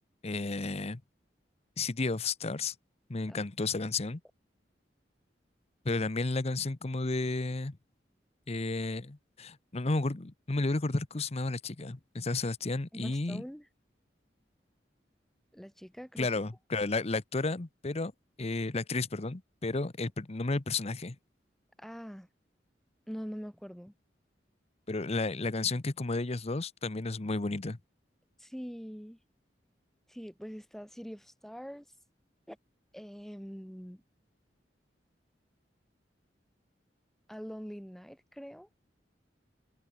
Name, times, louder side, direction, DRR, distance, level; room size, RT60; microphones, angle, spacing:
voice 1, 0.2-1.0 1.8-2.7 3.1-4.2 5.8-7.8 8.5-13.4 16.2-18.1 18.4-21.2 24.9-27.8, left 3 dB, 35° left, 0.9 m, -32 dB
voice 2, 12.9-13.7 15.5-16.3 21.8-22.3 23.1-23.9 28.4-29.2 30.1-31.9 32.5-32.6 32.9-34.0 37.3-38.7, equal, ahead, 3.4 m, -43 dB
head